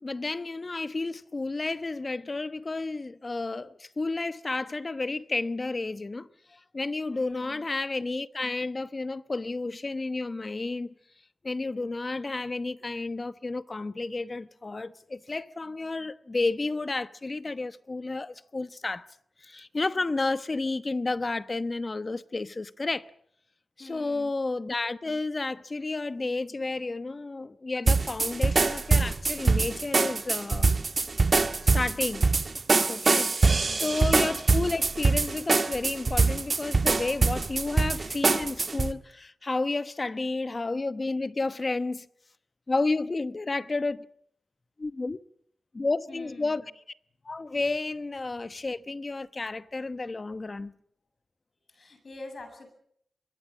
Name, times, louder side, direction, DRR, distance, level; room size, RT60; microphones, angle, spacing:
voice 1, 0.0-10.9 11.4-19.1 19.4-23.1 23.8-30.7 31.6-32.2 32.9-33.3 33.7-42.1 42.7-44.1 44.8-45.2 45.7-46.6 47.2-50.8, left 3 dB, 35° left, 1.0 m, -31 dB
voice 2, 7.1-7.6 23.8-24.3 33.4-34.1 46.1-46.6 51.7-52.7, left 3 dB, 50° left, 8.0 m, -45 dB
sound 1, 27.9-38.9, right 3 dB, 45° right, 1.4 m, -24 dB
24.5 x 22.0 x 7.4 m
wide cardioid pair, 95°, 0 cm